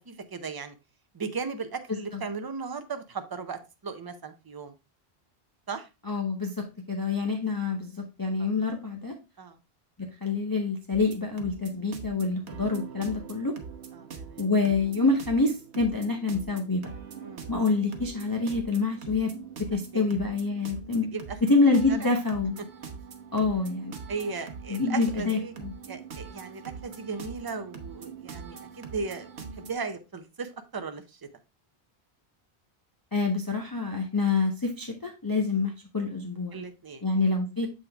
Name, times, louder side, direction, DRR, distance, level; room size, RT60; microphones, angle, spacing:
voice 1, 0.1-0.7 1.1-4.7 5.7-5.9 8.4-8.5 9.4-9.6 13.9-14.5 17.2-17.5 19.9-20.1 21.1-21.4 21.9-22.1 24.1-25.5 25.9-29.3 29.6-31.3 36.5-37.0, right 5 dB, 30° right, 8 dB, 0.5 m, -36 dB
voice 2, 6.1-9.1 10.2-13.6 14.4-16.8 17.5-19.3 19.7-21.1 21.4-22.6 23.3-23.9 24.7-25.7 33.1-36.6 37.0-37.7, left 3 dB, 25° left, 0 dB, 0.7 m, -26 dB
sound 1, 10.9-29.7, right 5 dB, 85° right, 1.2 m, -43 dB
7.3 x 3.9 x 3.3 m, 0.28 s
omnidirectional pair, 1.1 m